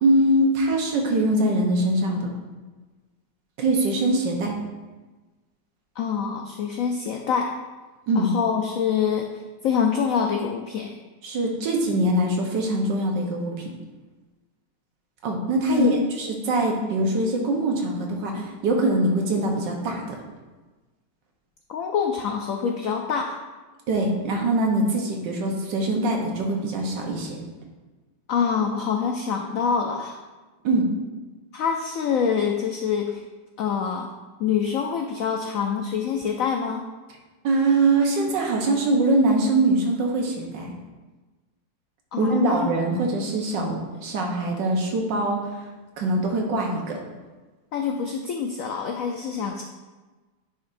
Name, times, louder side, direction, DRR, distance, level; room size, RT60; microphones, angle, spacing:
voice 1, 0.0-2.3 3.6-4.6 8.1-8.3 11.2-13.6 15.2-20.2 23.9-27.4 30.6-30.9 37.4-40.7 42.2-45.6 46.0-47.0, right 2 dB, 80° right, 1 dB, 1.7 m, -23 dB
voice 2, 6.0-7.5 8.2-10.9 15.7-16.1 21.7-23.4 28.3-30.2 31.5-33.2 33.6-34.1 34.4-36.8 42.1-42.7 47.7-49.6, left 6 dB, 80° left, 3 dB, 0.7 m, -25 dB
9.8 x 5.3 x 2.6 m, 1.2 s
omnidirectional pair, 2.0 m